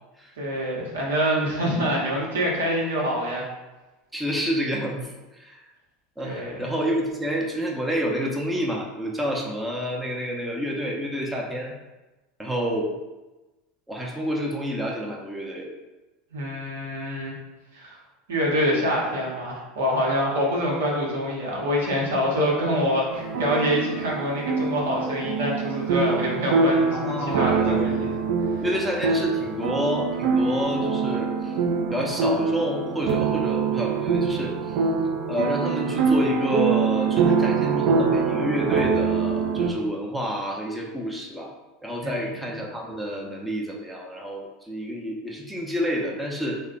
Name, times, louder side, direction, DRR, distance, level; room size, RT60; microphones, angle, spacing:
voice 1, 0.4-3.4 6.2-6.6 16.3-17.3 17.7-18.0 18.3-28.1 42.0-42.6, equal, 75° right, -3 dB, 0.8 m, -26 dB
voice 2, 4.1-5.6 6.2-11.7 12.4-12.9 13.9-15.7 26.9-27.9 28.6-31.6 31.9-34.8 35.3-41.5 41.8-46.6, equal, 5° right, -2 dB, 0.6 m, -29 dB
sound 1, 23.1-39.7, right 5 dB, 60° right, 0.4 m, -24 dB
3.1 x 2.1 x 3.7 m, 1.1 s
figure-of-eight pair, 75°, 0 cm